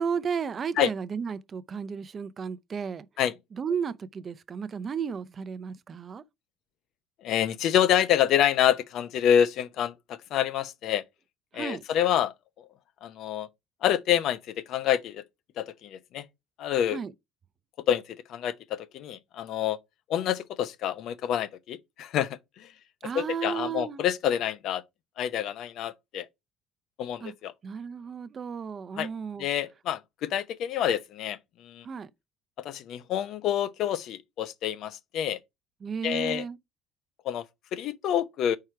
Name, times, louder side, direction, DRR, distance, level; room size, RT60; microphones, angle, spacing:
voice 1, 0.0-3.1 3.6-6.2 11.5-11.8 16.9-17.1 23.0-24.0 27.2-27.3 27.6-29.4 31.8-32.1 35.8-36.6, right 6 dB, 40° right, 0.6 m, -33 dB
voice 2, 7.2-11.0 11.5-12.7 13.0-13.5 13.8-15.2 15.6-16.3 16.6-17.0 17.9-19.8 20.1-22.7 23.1-24.8 25.2-26.3 27.0-27.5 29.0-29.1 29.4-31.9 32.6-35.4 36.0-36.5 37.2-38.6, left 10 dB, 65° left, 0.7 m, -27 dB
4.8 x 4.4 x 5.8 m
supercardioid pair, 85°, 0 cm